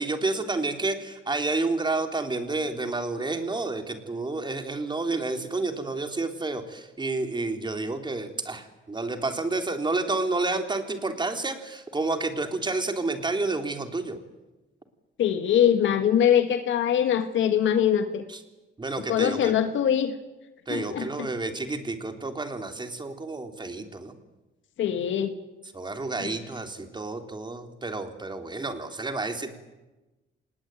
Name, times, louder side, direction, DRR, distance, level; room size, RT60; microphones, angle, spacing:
voice 1, 0.0-14.2 18.3-18.4 18.8-19.6 20.7-24.2 25.7-29.5, right 3 dB, 20° right, 6 dB, 3.6 m, -30 dB
voice 2, 15.2-18.2 19.1-20.1 20.7-21.3 24.8-25.3 26.2-26.3, left 9 dB, 75° left, 8 dB, 1.7 m, -23 dB
26.0 x 20.0 x 9.1 m, 1.1 s
cardioid pair, 90°, 20 cm